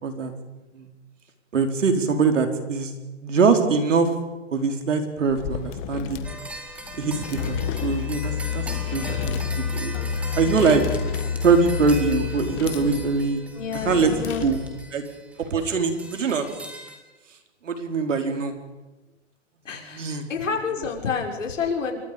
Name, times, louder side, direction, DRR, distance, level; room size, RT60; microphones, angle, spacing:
voice 1, 1.5-2.9 3.2-4.1 4.5-6.2 7.0-8.6 8.9-9.9 10.3-10.8 11.4-13.4 13.8-14.1 14.4-14.6 14.9-15.0 15.4-16.5 17.6-18.5 19.7-20.2, right 4 dB, 80° right, 5 dB, 4.4 m, -23 dB
sound 1, 5.3-14.9, left 10 dB, 25° left, 1.4 m, -36 dB
sound 2, 6.2-17.0, right 1 dB, 5° right, 2.2 m, -39 dB
sound 3, 7.4-13.1, left 7 dB, 50° left, 2.2 m, -29 dB
voice 2, 13.5-14.4 19.6-22.0, left 5 dB, 85° left, 2 dB, 5.9 m, -29 dB
29.0 x 23.5 x 5.3 m, 1.1 s
hypercardioid pair, 155°, 37 cm